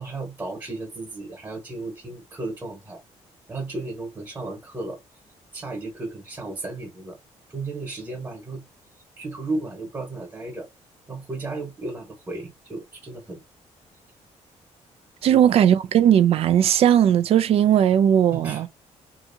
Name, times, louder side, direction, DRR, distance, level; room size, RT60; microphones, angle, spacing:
voice 1, 0.0-3.0 3.5-5.0 5.5-7.2 7.5-8.6 9.2-10.7 11.1-13.4 15.3-15.5 18.3-18.6, right 2 dB, 20° right, 1.1 m, -34 dB
voice 2, 15.2-18.7, right 10 dB, 55° right, 0.4 m, -18 dB
2.8 x 2.4 x 2.6 m
cardioid pair, 150°, 12 cm